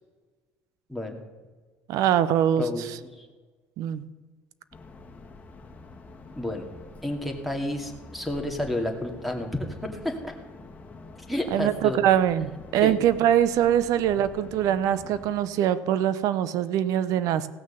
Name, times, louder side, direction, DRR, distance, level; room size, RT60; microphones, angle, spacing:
voice 1, 0.9-1.2 2.6-3.3 6.4-6.7 7.0-10.4 11.3-12.0 12.8-13.0, left 1 dB, ahead, 4 dB, 2.3 m, -31 dB
voice 2, 1.9-2.6 3.8-4.0 11.5-17.5, right 10 dB, 70° right, 15 dB, 0.7 m, -23 dB
sound 1, 4.7-15.3, left 3 dB, 25° left, 1.9 m, -47 dB
16.0 x 6.5 x 6.9 m, 1.4 s
supercardioid pair, 90°, 6 cm